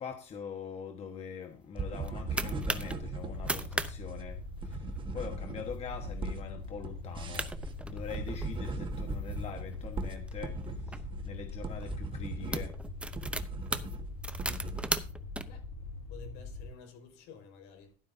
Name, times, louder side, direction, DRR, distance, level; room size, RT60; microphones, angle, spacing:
voice 1, 0.0-7.5 7.8-10.6 10.8-12.7, left 6 dB, 35° left, 1.4 m, -43 dB
sound 1, 1.8-2.9 3.3-3.9 4.2-4.3 4.6-5.0 5.5-5.8 6.2-6.3 7.0-7.1 7.3-8.5 9.1-11.0 11.8-11.9 12.3-15.4, right 2 dB, 5° right, 0.7 m, -37 dB
sound 2, 1.8-15.0, right 4 dB, 25° right, 1.5 m, -39 dB
sound 3, 2.2-16.7, left 3 dB, 90° left, 2.1 m, -43 dB
voice 2, 16.1-18.0, left 7 dB, 70° left, 4.9 m, -52 dB
13.0 x 11.5 x 2.7 m
cardioid pair, 130°, 19 cm